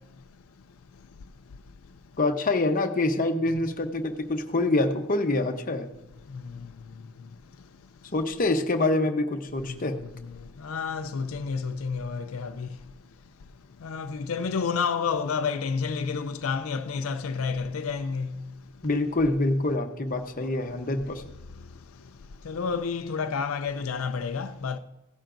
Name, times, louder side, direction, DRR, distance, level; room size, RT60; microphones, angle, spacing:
voice 1, 2.2-5.9 8.1-10.0 18.8-21.2, left 2 dB, 40° left, 0.9 m, -26 dB
voice 2, 10.6-12.7 13.8-18.3 20.4-20.5 22.5-24.8, left 5 dB, 90° left, 0.5 m, -29 dB
16.0 x 11.5 x 2.6 m
head